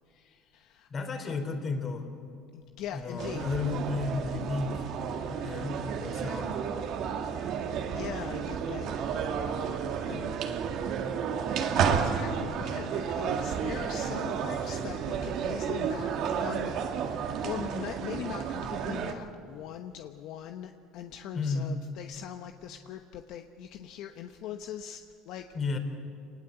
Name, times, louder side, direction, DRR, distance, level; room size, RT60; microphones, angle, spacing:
voice 1, 0.1-0.9 1.3-1.4 2.5-3.4 7.9-9.0 9.2-10.4 11.6-17.0 17.3-25.5, left 10 dB, 65° left, 6 dB, 0.9 m, -41 dB
voice 2, 0.9-2.1 2.9-4.9 5.3-6.6 21.3-21.7 25.5-25.8, left 4 dB, 35° left, 6 dB, 3.8 m, -33 dB
sound 1, 3.2-19.1, right 7 dB, 60° right, 1.8 m, -32 dB
27.0 x 19.5 x 8.0 m, 2.4 s
supercardioid pair, 100°, 0 cm